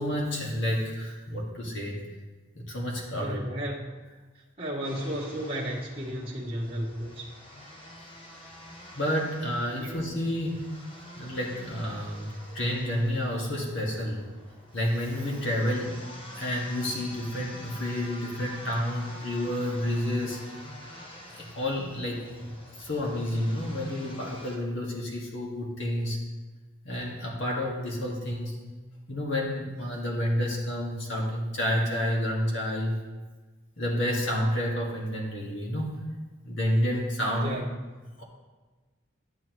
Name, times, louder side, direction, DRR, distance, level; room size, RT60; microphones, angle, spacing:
voice 1, 0.0-2.1 2.6-3.4 8.9-10.7 11.2-14.2 14.7-16.0 16.4-20.4 21.3-22.3 22.8-26.2 26.9-28.6 29.1-33.0 33.8-35.9 36.4-37.6 38.2-38.3, equal, 60° left, -3 dB, 1.8 m, -30 dB
voice 2, 3.2-3.9 4.3-7.3 9.8-9.9 37.4-37.7, equal, 25° right, -5 dB, 1.1 m, -33 dB
sound 1, 4.8-24.6, left 1 dB, 25° left, 0.9 m, -47 dB
11.0 x 7.5 x 3.1 m, 1.3 s
head